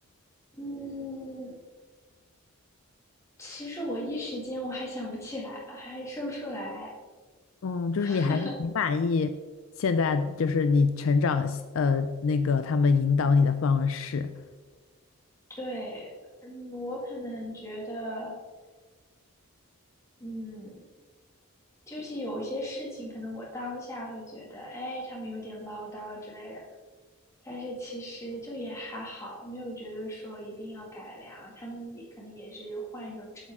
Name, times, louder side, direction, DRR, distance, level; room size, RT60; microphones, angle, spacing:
voice 1, 0.5-1.5 3.4-6.9 8.0-8.5 15.5-16.1 16.4-18.3 20.2-20.9 21.9-26.6 27.4-33.5, equal, 15° left, -4 dB, 2.0 m, -37 dB
voice 2, 7.6-9.3 9.8-14.3, left 4 dB, 65° left, 9 dB, 0.4 m, -25 dB
8.2 x 7.2 x 3.6 m, 1.4 s
head